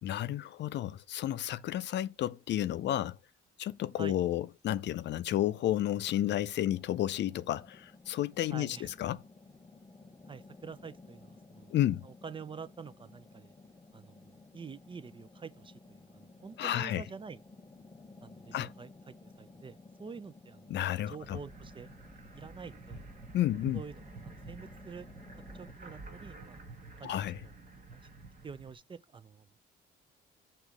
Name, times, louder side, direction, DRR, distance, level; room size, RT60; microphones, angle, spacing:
voice 1, 0.0-3.2 3.6-9.2 11.7-12.1 16.6-17.0 18.5-18.7 20.7-21.4 23.3-23.8 27.0-27.4, left 12 dB, 65° left, 0.4 m, -31 dB
sound 1, 6.7-25.7, left 3 dB, 20° left, 0.6 m, -55 dB
voice 2, 8.5-8.9 10.3-11.7 12.0-13.5 13.9-17.4 18.2-20.7 21.1-21.9 22.3-23.0 23.7-25.1 25.5-26.6 27.0-27.5 27.9-28.0 28.4-29.5, right 5 dB, 25° right, 0.4 m, -47 dB
sound 2, 21.2-28.7, right 3 dB, 45° right, 1.2 m, -50 dB
6.5 x 3.0 x 4.9 m
cardioid pair, 90°, 20 cm